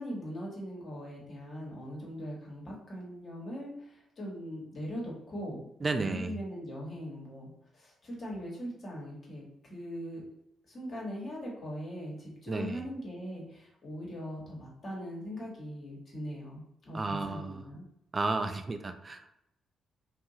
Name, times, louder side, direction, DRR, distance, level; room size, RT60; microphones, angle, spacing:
voice 1, 0.0-9.4 9.7-10.2 10.7-17.9, equal, 50° left, -3 dB, 1.2 m, -40 dB
voice 2, 5.8-6.4 12.5-12.8 16.9-17.6 18.1-19.3, right 3 dB, 35° right, 8 dB, 0.3 m, -33 dB
2.6 x 2.4 x 2.8 m, 0.80 s
hypercardioid pair, 40°, 0 cm